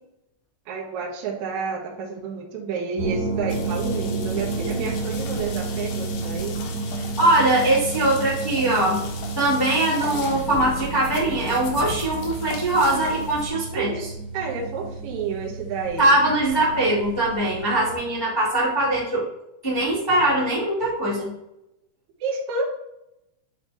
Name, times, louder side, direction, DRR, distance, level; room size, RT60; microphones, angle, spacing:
voice 1, 0.7-6.6 13.7-14.0 14.3-16.1 22.2-22.6, right 5 dB, 70° right, -2 dB, 1.8 m, -30 dB
sound 1, 3.0-17.9, right 3 dB, 45° right, 1.1 m, -31 dB
sound 2, 3.5-13.5, left 4 dB, 85° left, 3.6 m, -37 dB
voice 2, 6.9-9.0 9.3-14.1 16.0-19.2 19.6-21.3, right 1 dB, 25° left, -7 dB, 0.5 m, -21 dB
9.0 x 4.0 x 3.5 m, 0.85 s
omnidirectional pair, 5.2 m